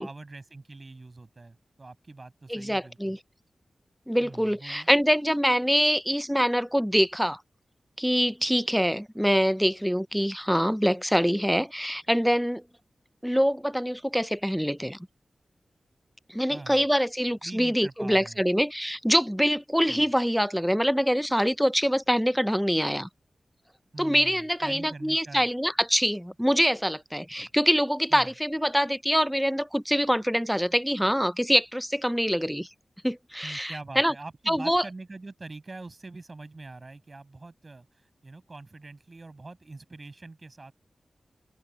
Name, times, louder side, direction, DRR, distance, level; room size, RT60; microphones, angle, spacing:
voice 1, 0.0-3.2 4.2-4.9 16.5-16.8 17.4-18.4 19.9-20.1 23.9-25.5 27.4-27.5 28.1-28.3 33.4-37.9 38.2-40.7, right 3 dB, 40° right, 6.4 m, -43 dB
voice 2, 2.5-3.2 4.1-7.4 8.0-12.6 13.2-15.0 16.3-23.1 24.0-32.7 33.0-34.1 34.5-34.8, equal, ahead, 0.5 m, -25 dB
wide cardioid pair, 65°, 0 cm